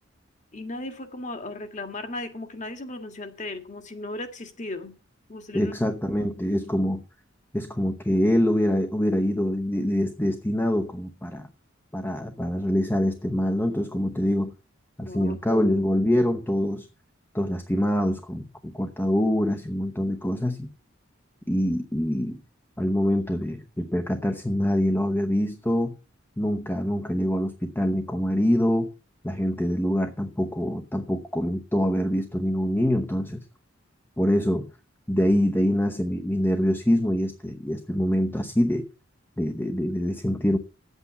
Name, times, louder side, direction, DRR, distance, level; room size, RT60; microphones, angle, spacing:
voice 1, 0.5-4.9 5.3-5.7 15.1-15.8, left 2 dB, 40° left, 7 dB, 1.8 m, -36 dB
voice 2, 5.5-7.0 7.5-11.5 11.9-14.5 15.0-16.9 17.3-20.7 21.5-22.4 22.8-25.9 26.4-28.9 29.2-33.4 34.2-34.7 35.1-38.9 39.4-40.6, equal, 10° left, 7 dB, 0.9 m, -25 dB
9.6 x 8.2 x 7.0 m, 0.34 s
head